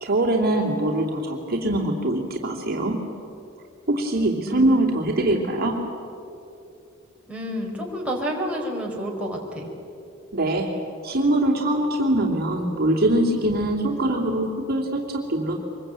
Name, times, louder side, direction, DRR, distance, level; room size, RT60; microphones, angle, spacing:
voice 1, 0.0-3.0 3.9-5.8 10.3-10.8 11.0-15.6, right 1 dB, 50° right, 0 dB, 2.7 m, -23 dB
voice 2, 4.4-4.9 7.3-9.7, equal, 5° right, -2 dB, 4.3 m, -29 dB
25.0 x 22.0 x 8.9 m, 2.7 s
head